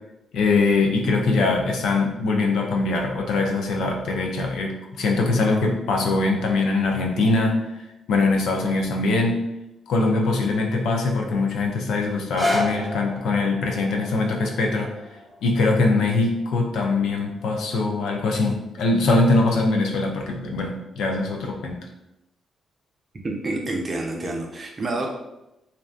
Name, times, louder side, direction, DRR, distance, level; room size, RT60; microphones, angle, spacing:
voice 1, 0.3-7.8 8.1-9.4 9.9-14.9 15.4-21.8, left 3 dB, 75° left, 1 dB, 0.4 m, -22 dB
sound 1, 12.2-18.2 18.9-19.0, left 1 dB, 10° right, 0.9 m, -32 dB
voice 2, 23.2-25.1, right 2 dB, 40° right, 1 dB, 0.5 m, -28 dB
2.6 x 2.1 x 2.4 m, 0.91 s
supercardioid pair, 55°, 0 cm